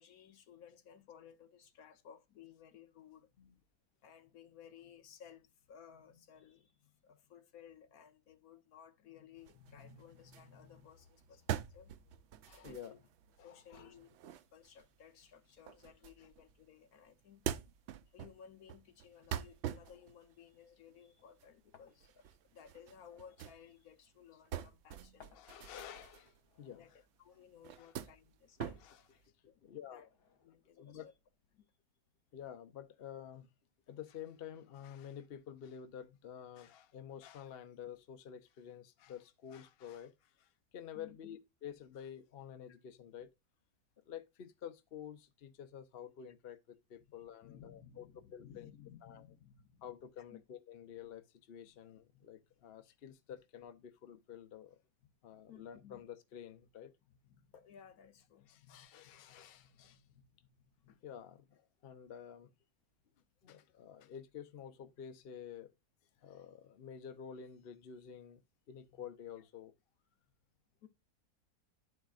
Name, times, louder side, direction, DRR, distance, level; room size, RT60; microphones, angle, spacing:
voice 1, 0.0-3.4 4.0-11.9 12.6-13.0 13.4-14.2 14.5-17.5 18.1-25.4 26.8-29.0 29.4-29.6 29.9-30.1 30.4-31.1 31.5-31.7 40.9-41.2 47.2-50.0 50.3-50.4 52.9-53.0 55.5-56.0 57.1-61.0 63.4-63.5 68.8-69.0 70.8-70.9, left 8 dB, 65° left, 1.3 m, -58 dB
sound 1, 9.4-16.7 17.1-23.6 23.9-27.0 27.4-29.2, right 10 dB, 85° right, 0.6 m, -45 dB
voice 2, 12.4-13.1 13.4-14.0 16.2-16.3 24.3-24.4 25.3-27.4 27.8-27.9 28.7-29.2 29.6-30.1 30.8-31.1 32.3-33.5 33.9-43.3 44.0-46.6 46.9-48.7 49.0-49.3 49.8-54.8 55.2-56.9 58.4-60.0 61.0-62.5 63.4-65.7 66.2-68.4 68.7-69.7, left 9 dB, 50° left, 0.7 m, -50 dB
sound 2, 19.7-31.6, left 6 dB, 90° left, 1.9 m, -64 dB
11.5 x 4.8 x 2.4 m
omnidirectional pair, 1.7 m